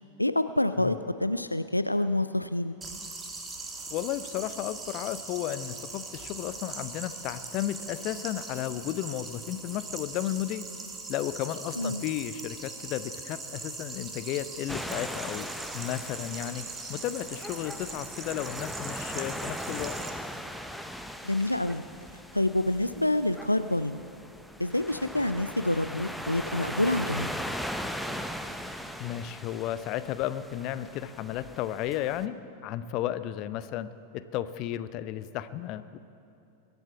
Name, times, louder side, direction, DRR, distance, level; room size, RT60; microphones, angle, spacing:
voice 1, 0.2-2.8 11.8-12.0 21.2-21.8 22.3-24.0 24.6-27.3, left 1 dB, 85° left, 12 dB, 0.4 m, -27 dB
sound 1, 2.8-20.1, right 3 dB, 15° right, 1.6 m, -41 dB
voice 2, 3.9-10.6 11.1-15.5 15.7-19.9 29.0-32.4 32.6-33.9 34.1-36.0, left 12 dB, 40° left, 14 dB, 0.6 m, -33 dB
sound 2, 14.7-32.3, equal, ahead, 0.7 m, -39 dB
22.0 x 8.0 x 7.1 m, 2.7 s
figure-of-eight pair, 90°, 0 cm